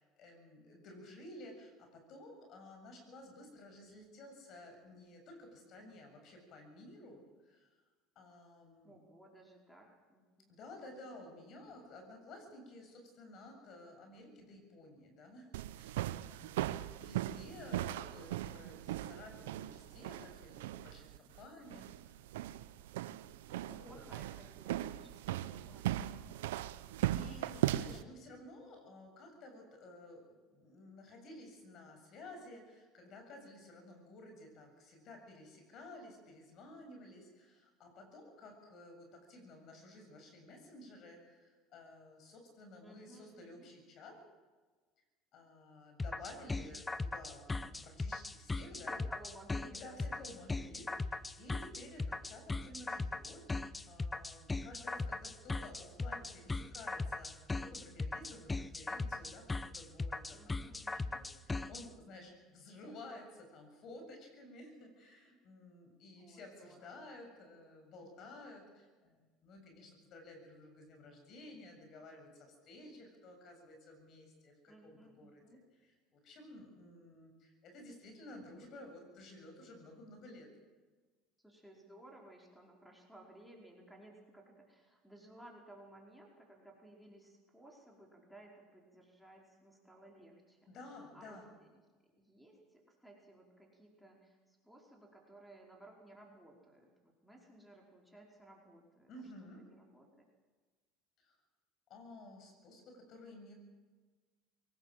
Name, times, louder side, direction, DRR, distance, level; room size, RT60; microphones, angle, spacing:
voice 1, 0.0-7.7 8.2-9.0 10.5-22.2 23.7-24.0 27.0-44.2 45.3-49.0 49.7-59.5 59.8-60.6 60.9-75.4 75.8-80.5 90.7-91.5 99.1-99.6 101.2-101.4 101.9-103.5, left 1 dB, 55° left, 4 dB, 7.3 m, -54 dB
voice 2, 8.8-10.5 23.5-26.5 42.8-43.7 48.6-50.4 60.3-61.2 66.2-67.4 68.0-68.4 74.7-75.6 81.4-91.8 92.2-99.1 99.6-100.1, right 1 dB, ahead, 0 dB, 4.9 m, -59 dB
sound 1, 15.5-28.0, right 14 dB, 90° right, 0.8 m, -39 dB
sound 2, 46.0-61.8, left 3 dB, 15° left, 0.9 m, -38 dB
22.5 x 19.0 x 7.8 m, 1.3 s
supercardioid pair, 95°, 0 cm